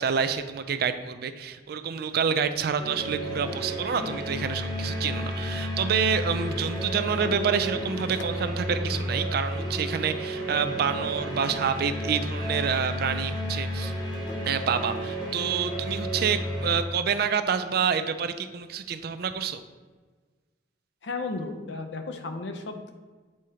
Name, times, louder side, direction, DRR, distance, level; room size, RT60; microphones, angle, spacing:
voice 1, 0.0-13.9 14.5-19.6, right 6 dB, 60° right, 10 dB, 0.4 m, -28 dB
sound 1, 2.8-16.9, equal, 25° left, 0.9 m, -32 dB
voice 2, 21.0-22.9, left 3 dB, 80° left, 5 dB, 0.7 m, -34 dB
7.6 x 2.8 x 4.9 m, 1.4 s
head